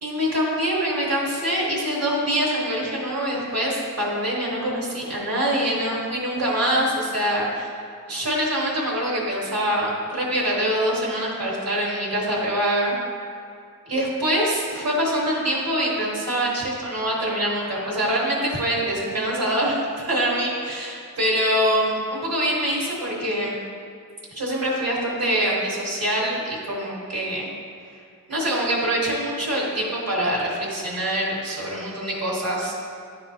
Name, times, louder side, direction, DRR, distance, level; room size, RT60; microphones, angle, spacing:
voice 1, 0.0-7.7 8.1-12.9 13.9-23.5 24.3-27.5 28.3-32.7, equal, 70° right, -5 dB, 1.2 m, -24 dB
10.0 x 3.6 x 2.8 m, 2.4 s
wide cardioid pair, 90°, 37 cm